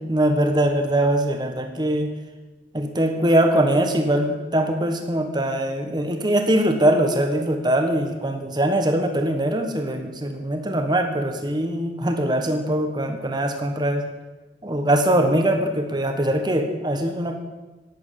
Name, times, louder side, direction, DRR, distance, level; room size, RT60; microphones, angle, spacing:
voice 1, 0.0-2.1 2.7-14.1 14.6-17.4, right 1 dB, 25° right, 5 dB, 1.4 m, -22 dB
11.5 x 9.1 x 7.6 m, 1.2 s
head